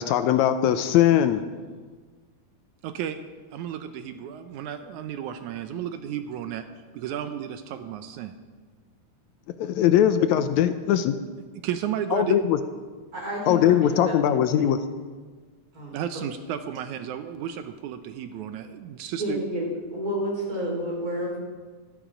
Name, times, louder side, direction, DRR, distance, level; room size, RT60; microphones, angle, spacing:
voice 1, 0.0-1.4 9.6-11.2 12.1-12.6 13.5-14.8, left 11 dB, 80° left, 10 dB, 1.9 m, -20 dB
voice 2, 2.8-3.2 3.5-6.6 6.9-8.4 11.6-12.4 15.9-19.4, right 9 dB, 80° right, 9 dB, 2.1 m, -33 dB
voice 3, 13.1-14.9 15.7-16.0 19.2-19.6 19.9-21.4, equal, 30° right, -3 dB, 4.9 m, -30 dB
15.5 x 13.5 x 5.0 m, 1.4 s
omnidirectional pair, 3.4 m